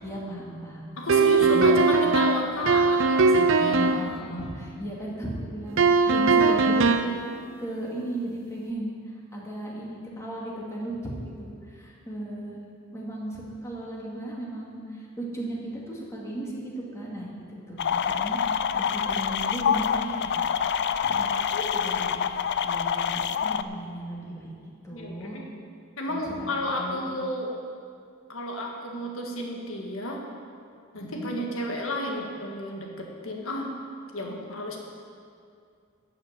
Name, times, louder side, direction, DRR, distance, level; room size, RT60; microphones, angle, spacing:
voice 1, 0.0-0.9 1.4-1.9 3.3-12.6 12.9-18.4 18.7-20.5 21.0-24.5 24.8-25.4 26.1-27.1 30.9-31.4, right 1 dB, 15° left, -4 dB, 2.2 m, -36 dB
voice 2, 1.0-4.0 24.9-25.4 26.0-27.5 28.3-30.2 30.9-33.7 34.1-34.8, left 1 dB, 70° left, 0 dB, 1.7 m, -32 dB
sound 1, 1.1-4.1 5.8-7.2, right 4 dB, 65° right, 0.5 m, -20 dB
sound 2, 17.8-23.6, left 7 dB, 55° left, 0.4 m, -26 dB
12.5 x 5.9 x 8.0 m, 2.3 s
head